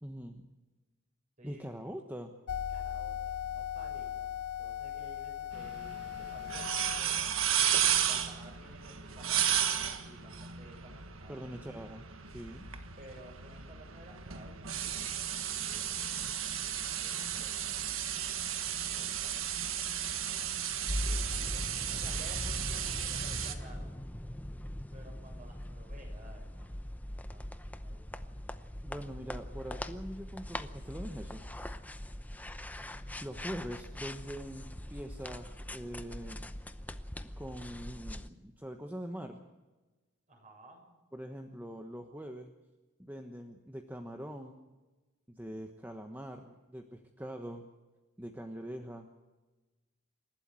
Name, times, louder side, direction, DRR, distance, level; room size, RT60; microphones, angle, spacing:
voice 1, 0.0-0.4 1.4-2.3 11.3-12.0 12.3-12.6 21.1-21.5 28.8-31.4 33.2-36.6 37.2-39.4 41.1-42.5 43.0-44.6 45.3-47.7 48.2-49.1, equal, 10° right, 4 dB, 1.2 m, -43 dB
voice 2, 1.4-1.7 2.5-7.2 8.0-11.4 13.0-16.2 17.0-17.9 18.9-19.5 21.3-23.9 24.9-26.8 27.3-28.3 32.9-33.3 40.3-40.8, right 1 dB, 35° right, 2 dB, 6.9 m, -55 dB
sound 1, 2.5-7.0, left 10 dB, 90° left, 0.7 m, -38 dB
sound 2, 5.5-23.5, right 9 dB, 75° right, 1.6 m, -34 dB
sound 3, 20.9-38.3, left 1 dB, 10° left, 0.7 m, -41 dB
28.0 x 12.5 x 7.7 m, 1.2 s
head